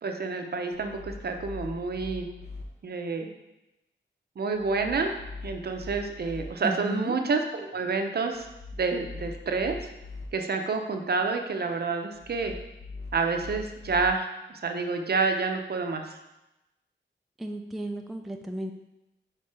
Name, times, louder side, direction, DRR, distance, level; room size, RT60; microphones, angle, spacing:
voice 1, 0.0-2.3 2.8-3.3 4.4-5.2 5.4-8.5 8.8-9.9 10.3-12.5 13.1-14.3 14.5-16.2, right 4 dB, 55° right, 4 dB, 0.6 m, -28 dB
sound 1, 0.7-2.6 4.5-6.4 8.3-10.2 12.1-14.1, left 3 dB, 55° left, 0.9 m, -42 dB
voice 2, 6.6-7.2 17.4-18.7, right 1 dB, ahead, 4 dB, 0.3 m, -34 dB
5.1 x 4.4 x 4.7 m, 0.95 s
wide cardioid pair, 140°, 20 cm